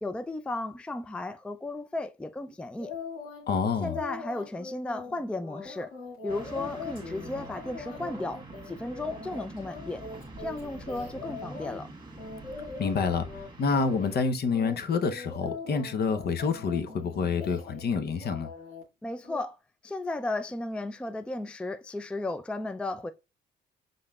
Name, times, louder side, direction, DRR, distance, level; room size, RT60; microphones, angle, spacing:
voice 1, 0.0-2.9 3.8-5.9 6.2-10.0 10.4-11.9 19.0-19.6 19.8-23.1, left 2 dB, 5° left, 0.3 m, -34 dB
sound 1, 2.8-3.5 3.8-11.8 12.2-13.5 13.7-14.2 14.5-17.9 18.2-18.8 19.2-19.4, left 5 dB, 85° left, 1.9 m, -41 dB
voice 2, 3.5-4.0 12.8-13.3 13.6-18.5, left 5 dB, 55° left, 0.7 m, -27 dB
sound 2, 6.3-14.2, right 2 dB, 25° right, 1.4 m, -45 dB
5.5 x 3.8 x 2.3 m
cardioid pair, 90°, 20 cm